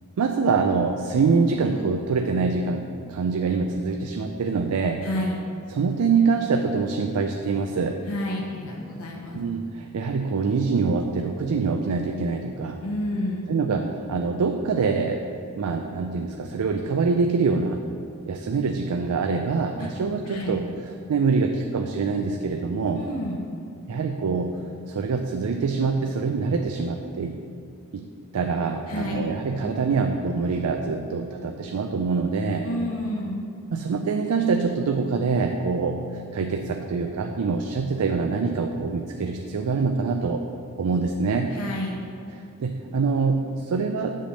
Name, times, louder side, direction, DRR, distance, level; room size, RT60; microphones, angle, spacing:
voice 1, 0.2-5.1 5.7-8.0 9.3-12.8 13.5-15.2 15.6-17.8 18.3-20.6 21.1-23.0 23.9-24.6 24.9-27.4 27.9-28.0 28.3-32.7 33.7-40.4 40.8-41.6 42.6-44.2, right 4 dB, 90° right, 4 dB, 0.4 m, -25 dB
voice 2, 5.0-5.4 8.1-9.4 12.8-13.5 19.8-19.9 20.2-20.6 22.9-23.4 28.9-29.3 32.6-33.4 41.5-42.0, left 1 dB, 75° left, -2 dB, 0.9 m, -30 dB
7.7 x 3.4 x 6.2 m, 2.5 s
head